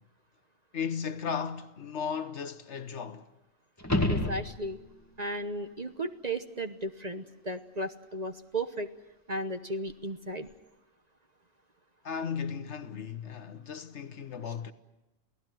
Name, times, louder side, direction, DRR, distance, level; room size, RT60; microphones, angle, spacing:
voice 1, 0.7-3.2 12.0-14.7, left 6 dB, 60° left, 1.3 m, -35 dB
sound 1, 3.8-5.0 9.9-10.0, left 1 dB, 10° left, 2.2 m, -29 dB
voice 2, 4.1-4.8 5.2-8.9 9.3-10.5, right 1 dB, 35° right, 1.1 m, -35 dB
28.5 x 17.0 x 9.2 m
omnidirectional pair, 1.4 m